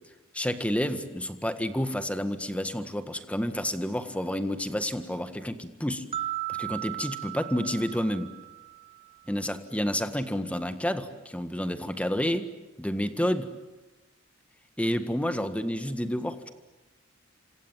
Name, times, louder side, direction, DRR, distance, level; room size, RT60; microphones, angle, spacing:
voice 1, 0.3-6.0 6.5-8.3 9.3-12.5 12.8-13.5 14.8-16.5, equal, 5° left, 10 dB, 1.7 m, -29 dB
sound 1, 6.1-9.2, right 15 dB, 30° right, 1.2 m, -36 dB
28.5 x 26.0 x 7.4 m, 1.1 s
head